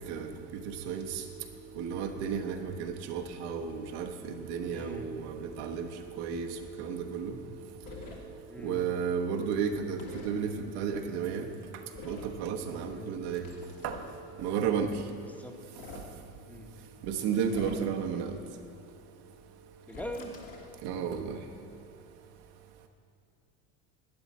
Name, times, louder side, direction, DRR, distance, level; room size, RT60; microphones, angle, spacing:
voice 1, 1.8-4.1 4.5-5.3 5.6-5.9 6.2-6.5 6.8-7.3 8.6-10.0 10.2-10.5 10.8-11.4 12.0-13.4 13.8-13.9 14.4-14.9 17.1-18.3 20.8-21.2, right 7 dB, 65° right, 4 dB, 1.2 m, -32 dB
voice 2, 4.7-5.1 8.5-8.8 12.9-13.1 15.2-15.5 16.5-16.7 19.9-20.4, equal, 5° left, 3 dB, 1.1 m, -42 dB
sound 1, 7.8-8.2 10.0-10.3 11.9-12.4 13.3-14.1 15.6-16.1 17.4-18.0 19.9-20.7, left 4 dB, 55° left, 1.9 m, -46 dB
11.5 x 10.0 x 4.2 m, 2.5 s
hypercardioid pair, 80°, 43 cm